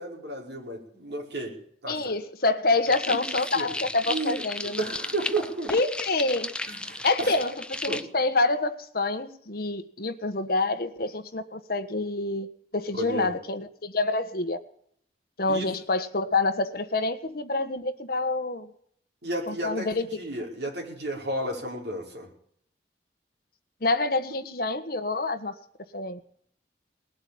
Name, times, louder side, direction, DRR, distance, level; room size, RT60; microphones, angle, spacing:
voice 1, 0.0-1.5 1.8-2.0 3.1-3.7 4.1-5.7 6.7-7.3 7.9-8.0 13.0-13.4 15.5-15.6 19.2-22.3, right 1 dB, 65° right, -1 dB, 5.4 m, -33 dB
voice 2, 1.9-4.9 5.7-6.5 7.0-12.5 12.7-14.6 15.4-18.7 19.5-20.1 23.8-25.5 25.9-26.2, left 3 dB, 55° left, 8 dB, 1.5 m, -27 dB
sound 1, 2.9-8.0, left 2 dB, 5° left, 0.6 m, -34 dB
20.0 x 8.2 x 8.7 m, 0.64 s
head